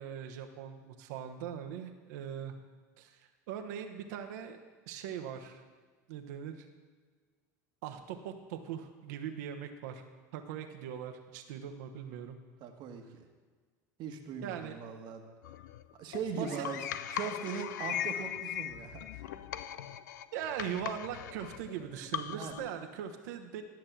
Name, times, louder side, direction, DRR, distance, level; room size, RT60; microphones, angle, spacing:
voice 1, 0.0-2.5 3.0-4.6 4.9-5.6 6.1-6.7 7.8-10.0 10.3-12.4 14.4-14.8 16.3-16.7 20.3-23.6, right 9 dB, 75° right, 5 dB, 1.1 m, -40 dB
voice 2, 12.6-13.3 14.0-15.2 15.9-16.8 17.1-19.2 22.3-22.6, right 6 dB, 55° right, 4 dB, 1.3 m, -40 dB
sound 1, 15.4-22.7, left 11 dB, 85° left, 0.4 m, -39 dB
12.5 x 6.4 x 6.0 m, 1.5 s
hypercardioid pair, 85°, 9 cm